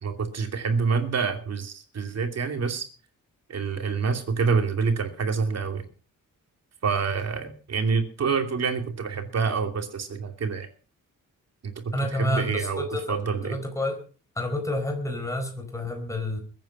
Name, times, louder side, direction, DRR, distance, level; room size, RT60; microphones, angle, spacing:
voice 1, 0.0-2.9 3.5-5.8 6.8-10.7 11.6-11.9 12.2-13.6, right 5 dB, 50° right, 6 dB, 2.8 m, -27 dB
voice 2, 11.9-13.2 13.4-14.0 14.3-16.4, left 1 dB, 10° left, 4 dB, 4.5 m, -29 dB
22.0 x 9.1 x 5.6 m, 0.38 s
wide cardioid pair, 175°, 33 cm